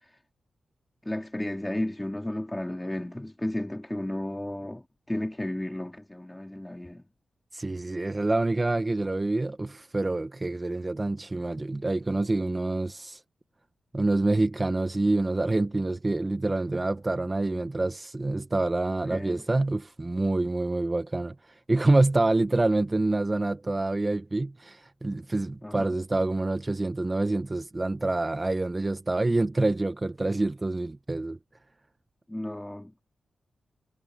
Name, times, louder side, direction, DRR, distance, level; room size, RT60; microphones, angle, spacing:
voice 1, 1.0-7.0 19.1-19.4 25.6-25.9 32.3-33.0, left 1 dB, 10° left, 3.4 m, -33 dB
voice 2, 7.5-13.2 13.9-31.4, right 2 dB, 25° right, 1.0 m, -27 dB
cardioid pair, 65°, 0 cm